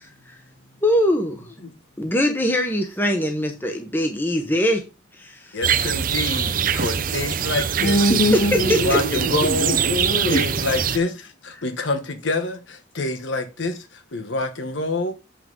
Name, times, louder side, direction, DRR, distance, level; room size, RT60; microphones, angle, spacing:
voice 1, 0.8-1.5 2.0-4.8 5.2-5.6 8.7-9.0, equal, 10° left, 1.1 m, -22 dB
voice 2, 5.5-8.0 8.6-9.9 10.3-15.2, left 2 dB, 70° left, 1.2 m, -27 dB
sound 1, 5.6-11.0, right 8 dB, 45° right, 0.5 m, -23 dB
voice 3, 7.8-10.4, equal, 40° left, 2.3 m, -22 dB
7.6 x 5.9 x 5.3 m
head